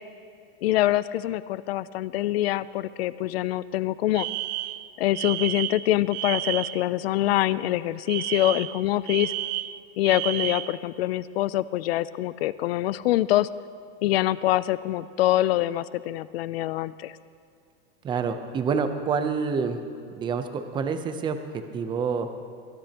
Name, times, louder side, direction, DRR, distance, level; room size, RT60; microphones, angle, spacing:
voice 1, 0.6-4.3 5.0-9.3 10.0-13.5 14.0-17.1, left 15 dB, 90° left, 17 dB, 0.5 m, -25 dB
Alarm, 4.1-6.9 8.1-10.8, right 16 dB, 45° right, 0.4 m, -31 dB
voice 2, 18.0-19.8 20.1-21.4 21.7-22.3, right 5 dB, 15° right, 8 dB, 0.7 m, -27 dB
23.0 x 16.5 x 3.0 m, 2.4 s
supercardioid pair, 165°, 30 cm